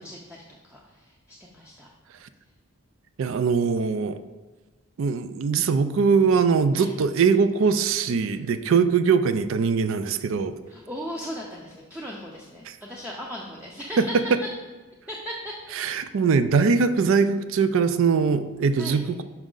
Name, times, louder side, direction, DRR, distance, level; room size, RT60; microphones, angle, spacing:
voice 1, 0.0-1.9 6.7-6.9 10.7-14.1 15.1-15.5 18.8-19.0, equal, 5° right, -3 dB, 0.5 m, -38 dB
voice 2, 3.2-4.2 5.0-10.5 12.7-12.8 14.0-14.2 15.8-19.2, right 5 dB, 60° right, 12 dB, 0.3 m, -22 dB
6.0 x 5.3 x 3.8 m, 1.3 s
head